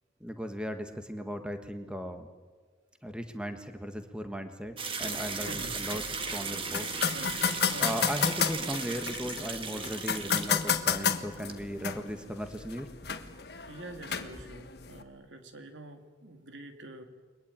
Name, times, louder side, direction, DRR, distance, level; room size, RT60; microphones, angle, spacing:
voice 1, 0.2-2.3 3.0-6.0 6.3-6.9 7.8-12.9, equal, 5° right, 6 dB, 1.4 m, -37 dB
sound 1, 4.8-11.1 11.3-11.5, right 5 dB, 30° right, 1.6 m, -36 dB
sound 2, 5.0-15.0, left 7 dB, 55° left, 1.4 m, -33 dB
voice 2, 5.3-5.8 7.1-8.0 13.7-17.0, right 1 dB, 80° right, 6 dB, 2.7 m, -46 dB
29.5 x 22.0 x 9.0 m, 1.5 s
head